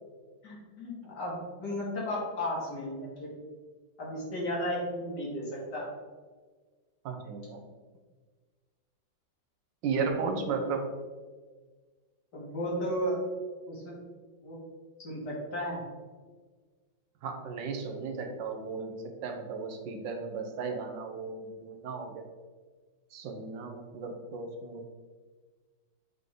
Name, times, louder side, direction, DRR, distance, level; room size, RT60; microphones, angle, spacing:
voice 1, 0.4-3.3 4.0-5.9 12.3-13.2 13.7-13.9 14.4-14.6 15.0-15.8, equal, 65° left, -5 dB, 2.6 m, -34 dB
voice 2, 7.0-7.6 9.8-10.9 17.2-19.0 19.2-22.2 23.1-24.9, right 4 dB, 80° right, 4 dB, 1.5 m, -35 dB
7.4 x 3.7 x 3.8 m, 1.4 s
omnidirectional pair, 2.0 m